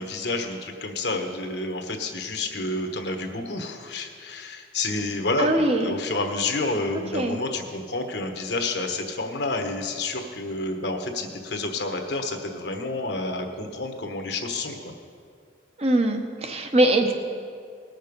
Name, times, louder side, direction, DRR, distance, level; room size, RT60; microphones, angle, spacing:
voice 1, 0.0-5.5 5.8-14.9, left 2 dB, 65° left, 4 dB, 1.2 m, -29 dB
voice 2, 5.4-5.9 7.1-7.4 15.8-17.1, right 1 dB, 35° right, 4 dB, 0.8 m, -22 dB
19.0 x 6.5 x 5.2 m, 2.3 s
head